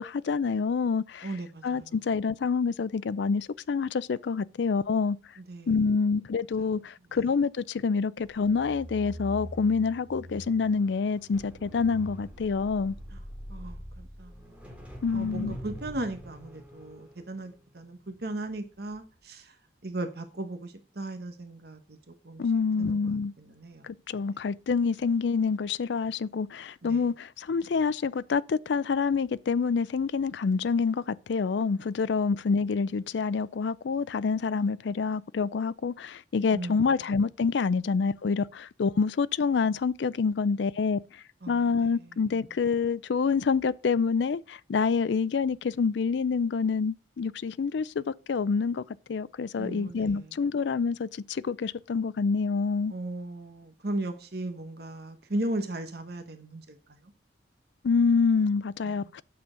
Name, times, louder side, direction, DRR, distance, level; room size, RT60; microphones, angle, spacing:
voice 1, 0.0-1.3 1.6-5.2 5.7-13.0 15.0-15.6 22.4-23.3 23.8-52.9 57.8-59.2, left 5 dB, 70° left, 0.4 m, -27 dB
voice 2, 1.2-1.9 5.5-5.7 6.6-6.7 13.1-13.2 13.5-14.4 15.1-19.5 19.8-22.0 22.2-22.4 22.8-23.9 26.8-27.0 36.5-36.8 41.4-41.9 49.6-50.2 52.9-57.0 58.9-59.2, right 1 dB, 55° right, 1.1 m, -37 dB
sound 1, 8.2-18.5 18.9-19.1, equal, 5° right, 2.5 m, -44 dB
8.7 x 6.9 x 5.0 m
head